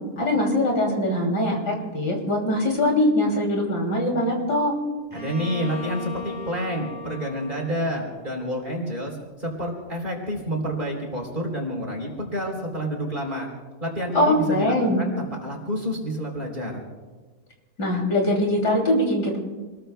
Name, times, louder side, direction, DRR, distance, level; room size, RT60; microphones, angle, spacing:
voice 1, 0.2-4.7 14.1-15.1 17.8-19.4, left 1 dB, 75° left, 0 dB, 3.6 m, -22 dB
Bowed string instrument, 5.1-8.8, left 4 dB, 5° right, 5.3 m, -38 dB
voice 2, 5.1-13.5 13.8-16.8, equal, 30° right, 0 dB, 3.8 m, -29 dB
28.0 x 20.5 x 2.3 m, 1.3 s
omnidirectional pair, 1.8 m